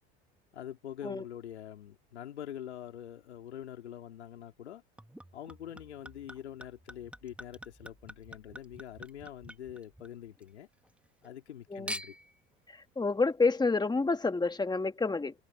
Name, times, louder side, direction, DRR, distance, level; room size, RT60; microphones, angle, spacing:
voice 1, 0.5-4.8 5.3-10.7 11.2-12.2, left 10 dB, 85° left, 3.6 m, -45 dB
Chink clink / Liquid, 5.0-10.5 10.8-11.5 11.9-12.4 13.1-13.2, equal, 5° right, 2.2 m, -46 dB
voice 2, 13.0-15.3, left 3 dB, 10° left, 2.1 m, -28 dB
hypercardioid pair, 75°, 33 cm